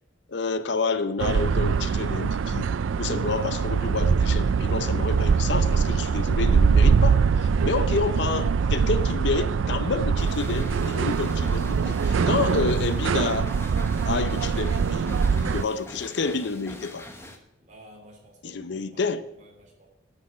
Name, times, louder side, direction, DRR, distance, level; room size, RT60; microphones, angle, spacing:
voice 1, 0.3-2.7 3.0-13.5 14.0-17.1 18.4-19.2, left 4 dB, 65° left, 0.6 m, -29 dB
sound 1, 1.2-15.6, right 5 dB, 85° right, 0.4 m, -23 dB
sound 2, 10.2-17.4, left 1 dB, 15° left, 0.9 m, -43 dB
voice 2, 17.6-19.0 19.3-19.9, right 1 dB, 40° right, 3.1 m, -52 dB
9.9 x 6.2 x 7.4 m
head